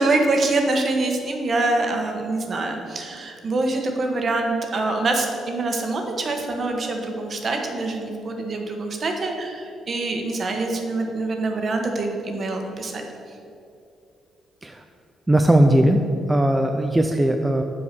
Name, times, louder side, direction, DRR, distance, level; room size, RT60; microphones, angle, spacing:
voice 1, 0.0-13.0, right 2 dB, 45° right, 3 dB, 1.2 m, -25 dB
voice 2, 15.3-16.0 16.3-17.6, right 1 dB, 15° right, 4 dB, 0.5 m, -18 dB
8.3 x 4.7 x 6.7 m, 2.6 s
cardioid pair, 90°, 0 cm